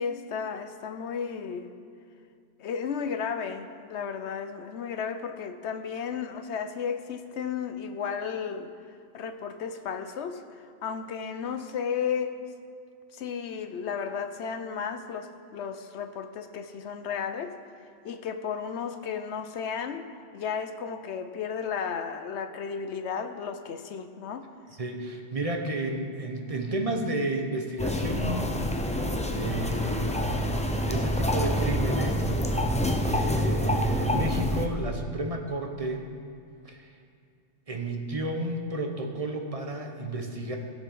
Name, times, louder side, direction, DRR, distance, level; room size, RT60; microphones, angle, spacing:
voice 1, 0.0-1.7 2.6-8.7 9.1-10.4 10.8-12.4 13.1-17.6 18.0-20.1 20.3-24.4, left 6 dB, 65° left, 9 dB, 0.9 m, -33 dB
voice 2, 24.8-28.6 29.2-36.0 36.6-36.9 37.7-40.6, right 2 dB, 30° right, 3 dB, 1.0 m, -32 dB
sound 1, 27.8-34.7, equal, 10° left, 0.3 m, -27 dB
16.0 x 7.2 x 5.5 m, 2.3 s
omnidirectional pair, 1.3 m